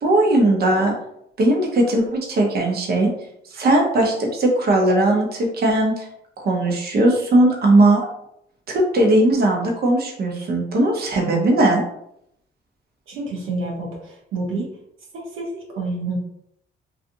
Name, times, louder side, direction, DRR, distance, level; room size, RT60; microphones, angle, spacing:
voice 1, 0.0-0.9 1.4-3.1 3.5-6.1 6.4-8.1 8.7-11.8, right 1 dB, 50° right, 0 dB, 0.7 m, -18 dB
voice 2, 13.1-14.7 15.1-16.2, right 2 dB, 85° right, -1 dB, 0.7 m, -28 dB
2.6 x 2.4 x 2.5 m, 0.75 s
cardioid pair, 90°, 20 cm